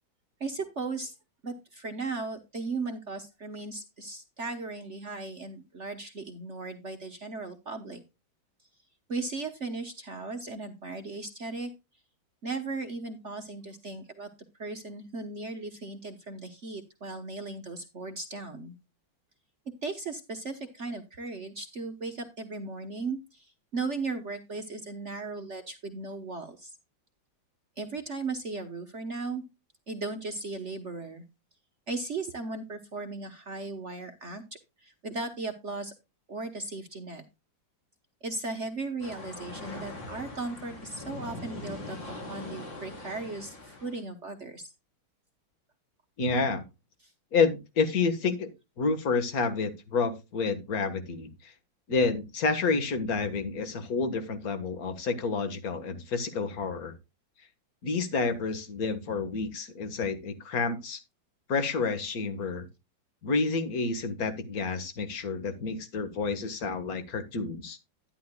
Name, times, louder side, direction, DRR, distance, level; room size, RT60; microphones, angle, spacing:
voice 1, 0.4-1.1 1.4-8.0 9.1-11.7 12.4-14.3 14.6-18.7 19.8-26.7 27.8-29.4 29.9-31.2 31.9-34.4 34.8-35.9 36.3-37.2 38.2-42.0 42.3-44.7 47.0-47.1, right 3 dB, 45° right, 5 dB, 1.2 m, -37 dB
sound 1, 39.0-44.0, left 2 dB, 65° left, 4.7 m, -41 dB
voice 2, 46.2-46.6 47.3-48.5 48.8-51.5 51.9-56.9 57.8-61.0 61.5-62.7 63.2-67.8, left 4 dB, 50° left, 9 dB, 1.9 m, -29 dB
11.5 x 11.0 x 2.3 m, 0.25 s
omnidirectional pair, 2.1 m